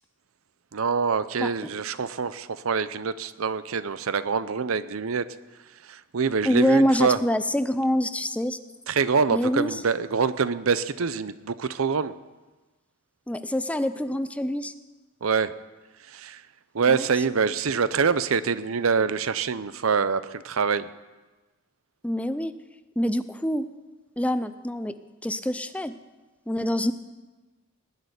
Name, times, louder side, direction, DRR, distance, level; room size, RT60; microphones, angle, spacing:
voice 1, 0.7-5.3 5.9-7.2 8.9-12.2 15.2-15.5 16.1-16.4 16.7-20.9, right 5 dB, 75° right, 15 dB, 0.6 m, -25 dB
voice 2, 1.4-1.7 6.4-8.6 9.3-9.8 13.3-14.7 16.9-17.1 22.0-22.5 23.0-23.7 24.2-25.0 25.2-26.0 26.5-26.9, left 1 dB, 5° left, 11 dB, 0.5 m, -25 dB
19.0 x 6.7 x 9.6 m, 1.2 s
head